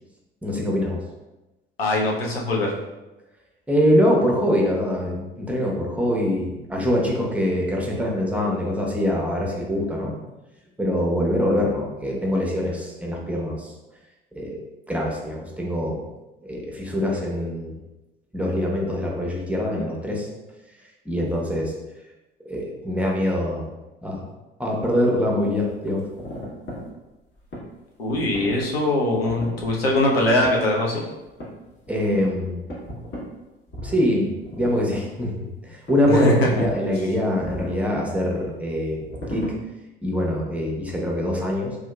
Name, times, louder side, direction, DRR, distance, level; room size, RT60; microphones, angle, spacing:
voice 1, 0.4-1.0 3.7-10.1 10.8-13.7 14.3-14.6 14.9-16.0 16.4-17.8 18.3-20.3 21.1-21.7 22.4-23.7 24.0-24.2 24.6-26.1 31.9-32.6 33.8-39.0 39.3-39.5 40.0-41.8, equal, 5° right, -2 dB, 0.8 m, -24 dB
voice 2, 1.8-2.8 28.0-31.0 36.1-36.7, left 1 dB, 80° left, -3 dB, 0.6 m, -21 dB
sound 1, 25.7-27.7 28.1-28.8 29.1-30.7 31.3-33.3 33.7-34.1 34.4-35.0 35.6-35.7 35.9-36.8 37.4-38.2 38.9-39.5, equal, 40° left, 1.2 m, -37 dB
3.6 x 2.7 x 2.2 m, 1.0 s
figure-of-eight pair, 55°, 30 cm